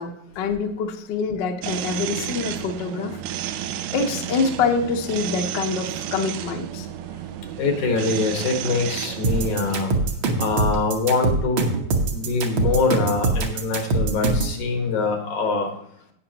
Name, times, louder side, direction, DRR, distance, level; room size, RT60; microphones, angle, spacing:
voice 1, 0.0-3.2 3.9-6.9, left 5 dB, 65° left, 4 dB, 1.1 m, -25 dB
sound 1, 1.6-9.8, right 11 dB, 80° right, 1.8 m, -32 dB
voice 2, 7.6-9.9 10.4-11.7 12.1-15.7, left 3 dB, 90° left, 3 dB, 3.1 m, -23 dB
sound 2, 9.2-14.6, right 3 dB, 55° right, 1.5 m, -22 dB
18.0 x 6.1 x 2.9 m, 0.72 s
omnidirectional pair, 3.3 m